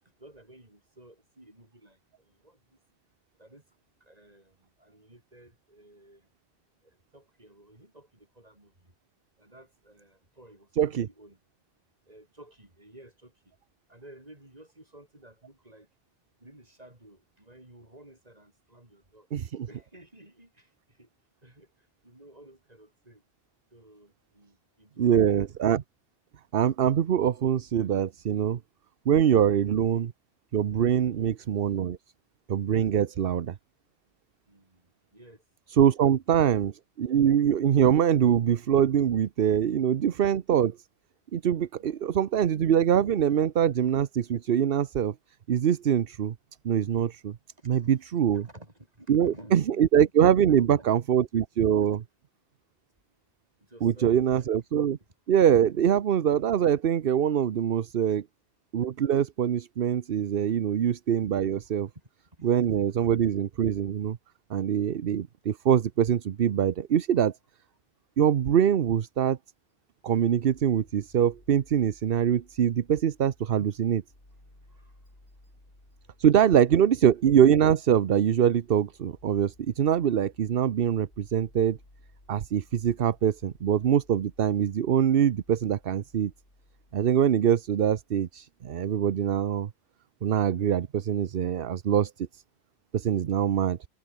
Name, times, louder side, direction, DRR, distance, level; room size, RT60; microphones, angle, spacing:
voice 1, 0.2-2.8 3.3-3.6 4.0-6.3 6.8-8.9 9.4-11.4 12.1-13.5 13.9-15.9 16.4-19.3 19.7-21.1 21.4-23.2 23.7-25.4 31.0-31.3 34.5-35.4 36.0-36.5 41.8-42.1 47.6-50.1 50.5-50.9 53.6-54.5 58.1-58.2 60.2-60.3 61.9-62.5 74.6-75.5, right 1 dB, 40° right, 5.5 m, -53 dB
voice 2, 10.8-11.1 19.3-19.7 25.0-25.8 26.5-28.6 29.1-30.1 30.5-32.0 32.5-33.5 35.7-36.7 37.0-40.8 41.3-45.1 45.5-46.3 46.6-47.4 47.7-48.5 49.1-52.0 53.8-55.0 55.3-58.2 58.7-61.9 62.4-64.2 64.5-67.3 68.2-69.4 70.0-74.0 76.2-81.8 82.3-86.3 86.9-89.7 90.2-92.4 92.9-93.8, right 9 dB, 65° right, 1.0 m, -24 dB
sound 1, 70.5-88.4, left 1 dB, 50° left, 5.7 m, -59 dB
omnidirectional pair, 1.1 m